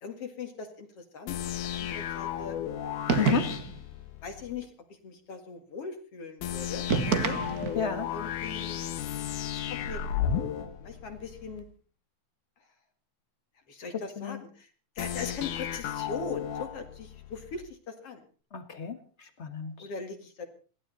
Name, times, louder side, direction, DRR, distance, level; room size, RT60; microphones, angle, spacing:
voice 1, 0.0-2.6 3.0-3.4 4.2-4.7 5.0-7.4 8.1-8.8 9.5-10.1 10.8-11.6 13.7-14.7 15.0-18.2 19.8-20.5, left 5 dB, 50° left, 6 dB, 2.8 m, -40 dB
sound 1, 1.3-4.6 6.4-11.6 15.0-17.6, left 9 dB, 85° left, 2.7 m, -34 dB
sound 2, 3.1-3.8 6.9-7.9, right 6 dB, 50° right, 1.1 m, -28 dB
voice 2, 3.2-3.5 7.7-8.1 13.9-14.4 18.5-19.9, left 6 dB, 30° left, 9 dB, 1.2 m, -32 dB
21.5 x 15.5 x 4.1 m, 0.39 s
omnidirectional pair, 3.5 m